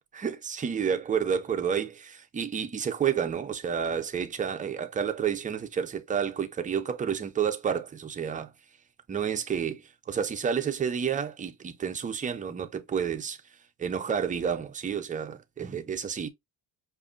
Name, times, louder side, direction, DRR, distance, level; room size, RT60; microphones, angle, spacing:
voice 1, 0.1-8.5 9.1-16.3, right 7 dB, 20° right, 0.3 m, -30 dB
5.0 x 2.5 x 2.3 m
cardioid pair, 125°, 47 cm